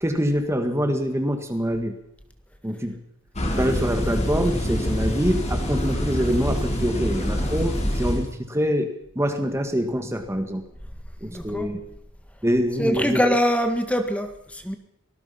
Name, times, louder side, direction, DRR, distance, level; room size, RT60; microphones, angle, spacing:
voice 1, 0.0-2.0 2.6-3.0 3.6-10.6 11.2-11.8 12.4-13.2, equal, 15° right, 7 dB, 1.7 m, -25 dB
sound 1, 3.4-8.3, equal, 30° left, 4.4 m, -25 dB
voice 2, 11.3-11.9 12.8-14.8, equal, 5° left, 6 dB, 1.8 m, -24 dB
25.0 x 19.0 x 5.8 m, 0.78 s
head